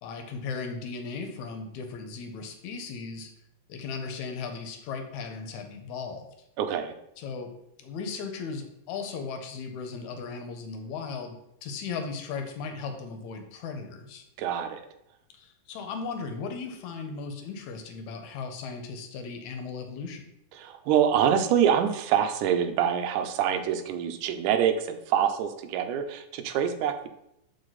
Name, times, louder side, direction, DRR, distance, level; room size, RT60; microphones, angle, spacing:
voice 1, 0.0-3.3 3.7-6.3 7.2-7.5 7.8-14.2 15.3-20.3, left 5 dB, 75° left, 5 dB, 1.9 m, -37 dB
voice 2, 6.6-6.9 14.4-14.8 20.6-27.1, right 9 dB, 80° right, 7 dB, 2.0 m, -25 dB
6.5 x 4.5 x 4.0 m, 0.80 s
omnidirectional pair, 3.8 m